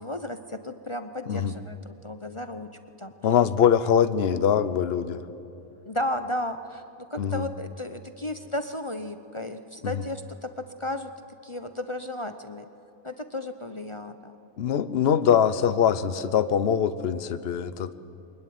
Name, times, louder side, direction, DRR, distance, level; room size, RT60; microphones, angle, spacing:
voice 1, 0.0-2.7 3.0-3.1 3.8-3.9 5.8-11.1 11.4-12.7 13.0-14.4, left 1 dB, 30° left, 8 dB, 0.5 m, -34 dB
voice 2, 3.2-5.2 7.2-7.5 9.8-9.9 14.6-17.9, left 8 dB, 50° left, 13 dB, 1.0 m, -23 dB
23.0 x 21.0 x 9.3 m, 2.8 s
omnidirectional pair, 1.5 m